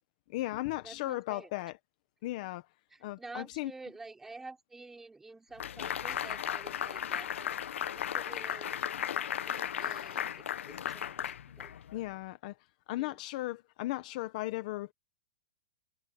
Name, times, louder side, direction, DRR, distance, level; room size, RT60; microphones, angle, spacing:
voice 1, 0.3-1.8 2.2-2.6 3.0-3.7 11.9-12.5 12.9-14.9, left 17 dB, 35° left, 1.0 m, -36 dB
voice 2, 0.8-1.5 2.9-8.8 9.4-11.7 12.9-13.2, right 3 dB, 5° right, 4.7 m, -50 dB
sound 1, 5.6-12.1, left 9 dB, 80° left, 0.8 m, -36 dB
hypercardioid pair, 175°, 7 cm